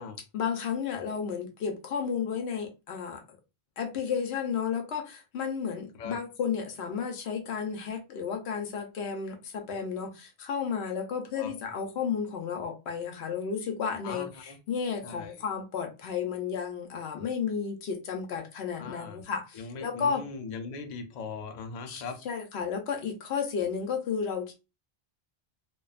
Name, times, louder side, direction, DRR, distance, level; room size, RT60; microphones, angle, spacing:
voice 1, 0.3-3.2 3.8-20.2 21.9-24.5, left 6 dB, 80° left, 0.9 m, -32 dB
voice 2, 14.0-14.6 15.0-15.3 18.8-19.2 19.6-22.2, left 4 dB, 55° left, 0.5 m, -39 dB
2.5 x 2.3 x 2.3 m
omnidirectional pair, 1.1 m